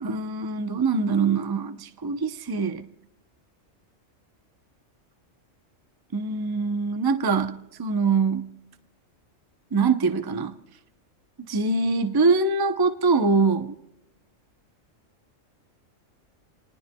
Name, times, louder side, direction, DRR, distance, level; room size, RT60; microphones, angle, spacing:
voice 1, 0.0-2.8 6.1-8.5 9.7-10.5 11.5-13.7, right 4 dB, 25° right, 8 dB, 0.5 m, -23 dB
29.0 x 19.5 x 2.2 m, 0.87 s
omnidirectional pair, 1.3 m